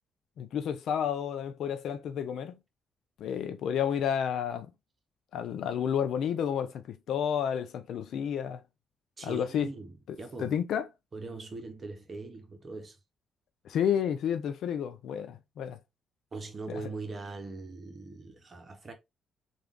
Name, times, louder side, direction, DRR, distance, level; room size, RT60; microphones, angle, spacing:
voice 1, 0.4-2.6 3.2-4.7 5.3-8.6 9.2-9.7 10.4-10.9 13.6-15.8 16.7-16.8, left 8 dB, 75° left, 0.5 m, -31 dB
voice 2, 9.2-10.5 11.1-13.0 16.3-18.9, right 3 dB, 35° right, 1.1 m, -41 dB
3.4 x 2.5 x 3.6 m
cardioid pair, 90°, 0 cm